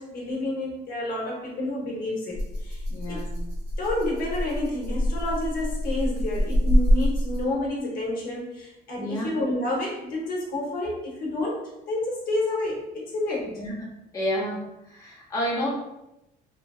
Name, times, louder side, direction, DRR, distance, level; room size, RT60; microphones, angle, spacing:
voice 1, 0.0-3.3 3.8-13.5, left 1 dB, 60° left, -3 dB, 0.9 m, -29 dB
Rattle (instrument), 2.3-7.7, equal, 90° right, 0.9 m, -25 dB
voice 2, 2.9-3.3 9.0-9.3 13.6-13.9 14.1-14.6 14.8-15.7, equal, 20° left, -5 dB, 0.8 m, -29 dB
2.9 x 2.4 x 2.3 m, 0.90 s
cardioid pair, 110°, 17 cm